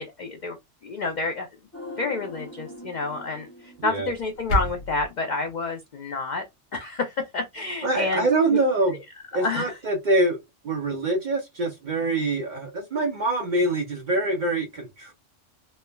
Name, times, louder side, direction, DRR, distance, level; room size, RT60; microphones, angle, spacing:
voice 1, 0.2-0.6 0.8-1.5 2.0-6.4 6.7-8.6 9.3-9.7, left 3 dB, 70° left, 0.4 m, -29 dB
sound 1, 1.7-5.0 5.3-5.4, left 1 dB, 15° left, 0.9 m, -43 dB
sound 2, 4.1-5.1, right 1 dB, 85° left, 1.2 m, -29 dB
voice 2, 7.8-9.0 9.3-10.4 10.6-15.1, right 2 dB, 50° right, 0.6 m, -24 dB
3.2 x 2.1 x 2.2 m
omnidirectional pair, 1.3 m